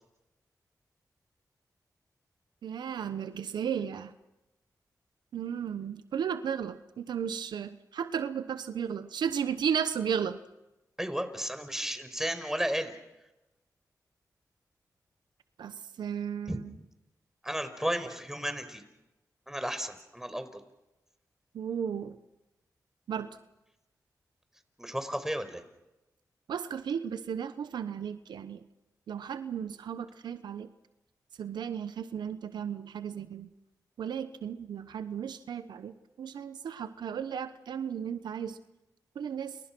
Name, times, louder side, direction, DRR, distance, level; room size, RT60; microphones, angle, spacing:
voice 1, 2.6-4.1 5.3-10.4 15.6-16.6 21.5-22.2 23.1-23.4 26.5-28.6 29.1-30.7 31.4-33.5 34.0-35.9 36.2-38.6 39.1-39.6, right 8 dB, 90° right, 12 dB, 1.0 m, -34 dB
voice 2, 11.0-12.9 16.5-16.6 17.4-18.8 19.5-20.6 24.8-25.6, equal, 5° right, 9 dB, 5.3 m, -33 dB
30.0 x 30.0 x 6.2 m, 0.98 s
cardioid pair, 50°, 7 cm